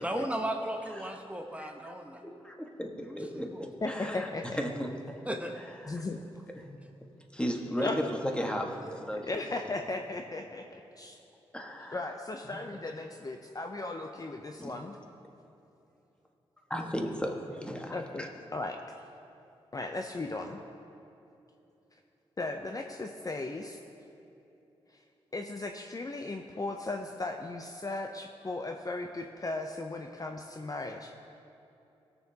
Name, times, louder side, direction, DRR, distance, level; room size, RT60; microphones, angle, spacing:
voice 1, 0.0-2.2 3.0-3.7 5.2-5.5 8.8-9.0 16.8-16.9, right 1 dB, 10° right, 3 dB, 0.9 m, -36 dB
voice 2, 2.4-4.3 4.6-4.9 5.8-6.0 6.6-6.8 7.3-8.8 9.1-9.4 11.5-12.1 14.6-14.7 16.7-18.3, equal, 10° left, 1 dB, 1.4 m, -35 dB
voice 3, 3.8-4.6 5.9-6.2 7.8-8.0 9.2-11.2 11.9-15.0 17.9-18.8 19.7-20.6 22.4-23.8 25.3-31.1, left 2 dB, 35° left, 4 dB, 0.6 m, -36 dB
16.5 x 6.8 x 2.8 m, 2.9 s
supercardioid pair, 45°, 11 cm